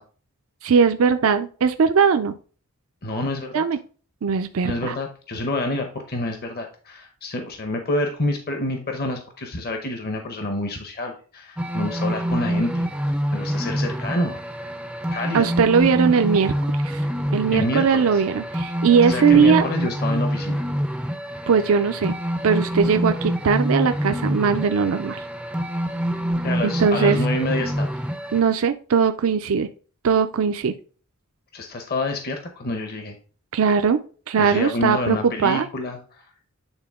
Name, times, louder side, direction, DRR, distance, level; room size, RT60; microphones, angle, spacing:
voice 1, 0.6-2.3 3.5-3.8 4.2-5.0 15.3-16.5 16.8-17.0 17.3-19.7 21.5-22.2 22.4-25.2 26.6-27.2 28.3-29.7 30.0-30.7 33.5-34.0 34.3-35.7, right 6 dB, 65° right, 8 dB, 0.5 m, -19 dB
voice 2, 3.0-3.6 4.6-12.9 13.3-14.4 15.1-15.5 17.5-18.2 19.0-20.6 26.4-27.9 31.5-33.2 34.4-36.2, left 2 dB, 45° left, 5 dB, 0.9 m, -28 dB
sound 1, 11.6-28.4, equal, 5° right, 0.4 m, -26 dB
8.9 x 3.6 x 3.6 m, 0.39 s
head